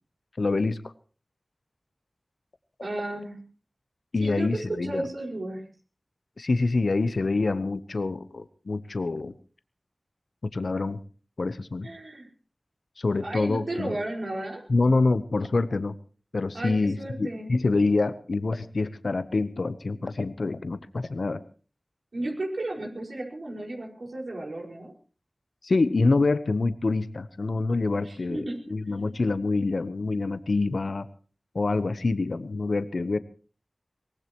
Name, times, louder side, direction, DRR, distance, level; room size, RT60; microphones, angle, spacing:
voice 1, 0.4-0.9 4.1-5.0 6.4-9.3 10.5-11.0 11.4-11.9 13.0-13.9 14.7-15.9 16.3-21.4 25.6-31.1 31.5-33.2, left 3 dB, 85° left, 12 dB, 0.9 m, -26 dB
voice 2, 2.8-3.4 4.2-4.5 4.8-5.6 11.8-12.3 13.2-14.6 16.5-17.5 22.1-24.9 28.0-29.2, right 1 dB, 85° right, 0 dB, 5.2 m, -34 dB
23.5 x 18.5 x 3.0 m, 0.39 s
wide cardioid pair, 45°, 0 cm